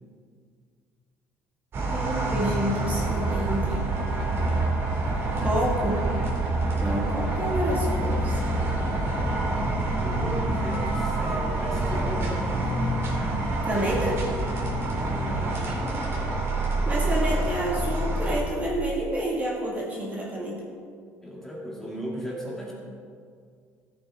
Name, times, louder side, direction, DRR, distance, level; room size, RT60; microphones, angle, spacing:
sound 1, 1.7-18.4, right 2 dB, 40° right, 2.5 m, -26 dB
voice 1, 1.9-4.1 5.4-6.1 6.8-8.4 13.6-14.2 16.9-20.6, right 1 dB, 25° right, -4 dB, 2.1 m, -29 dB
voice 2, 8.8-9.1 10.0-12.7 15.0-15.7 21.2-22.7, equal, 5° left, -4 dB, 2.4 m, -37 dB
14.5 x 8.5 x 3.7 m, 2.2 s
cardioid pair, 125°, 6 cm